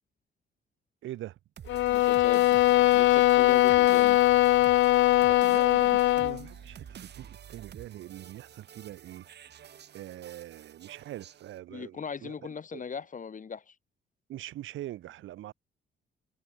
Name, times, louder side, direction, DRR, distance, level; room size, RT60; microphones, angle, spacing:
voice 1, 1.0-1.4 5.3-9.3 9.9-12.3 12.7-12.8 14.3-15.5, right 14 dB, 80° right, 2.0 m, -43 dB
sound 1, 1.6-11.6, right 9 dB, 60° right, 2.4 m, -48 dB
sound 2, 1.7-6.4, left 15 dB, 75° left, 0.5 m, -21 dB
voice 2, 1.9-4.2 11.7-13.7, left 6 dB, 40° left, 3.3 m, -39 dB
cardioid pair, 90°, 20 cm